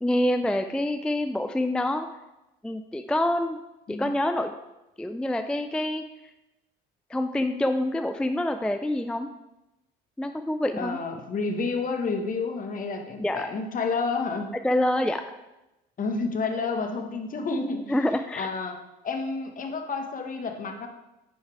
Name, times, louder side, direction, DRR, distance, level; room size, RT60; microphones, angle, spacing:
voice 1, 0.0-2.1 2.6-3.6 3.9-4.5 5.0-6.0 7.1-9.3 10.2-11.0 13.2-13.5 14.6-15.2 17.9-18.5, left 1 dB, 5° left, 7 dB, 0.3 m, -26 dB
voice 2, 10.7-14.5 16.0-17.9 18.3-18.7 19.0-20.9, left 4 dB, 45° left, 5 dB, 1.1 m, -30 dB
9.3 x 3.2 x 4.7 m, 0.97 s
supercardioid pair, 80°, 20 cm